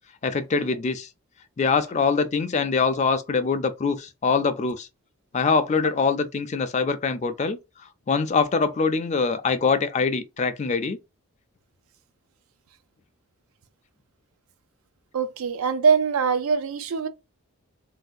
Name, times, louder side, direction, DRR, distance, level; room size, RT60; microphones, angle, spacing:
voice 1, 0.2-1.1 1.6-4.9 5.3-7.6 8.1-11.0, left 4 dB, 30° left, 0.3 m, -23 dB
voice 2, 15.1-17.1, right 6 dB, 75° right, 0.4 m, -22 dB
3.3 x 2.6 x 2.2 m
head